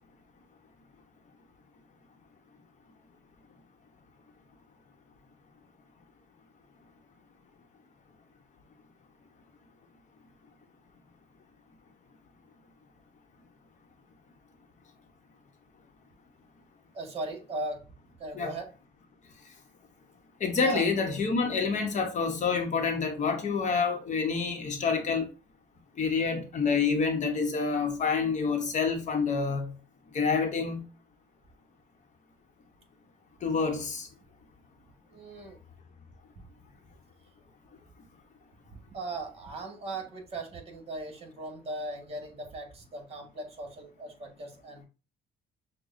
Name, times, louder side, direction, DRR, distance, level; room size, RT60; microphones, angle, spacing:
voice 1, 16.9-17.8 18.2-18.7 20.6-20.8 35.1-35.6 36.3-36.4 38.7-44.9, right 2 dB, 35° right, 1.7 m, -38 dB
voice 2, 20.4-25.3 26.0-29.7 30.1-30.8 33.4-34.1, left 5 dB, 45° left, 1.0 m, -27 dB
6.4 x 2.3 x 2.6 m
cardioid pair, 110°, 17 cm